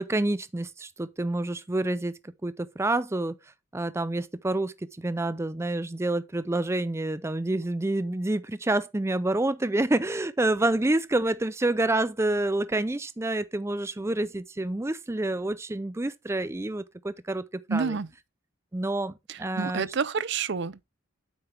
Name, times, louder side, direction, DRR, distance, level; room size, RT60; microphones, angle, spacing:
voice 1, 0.0-3.4 3.7-18.0 18.7-19.9, right 2 dB, 15° right, 0.5 m, -28 dB
voice 2, 17.7-18.1 19.3-20.8, right 5 dB, 60° right, 0.6 m, -29 dB
9.3 x 8.0 x 3.3 m
head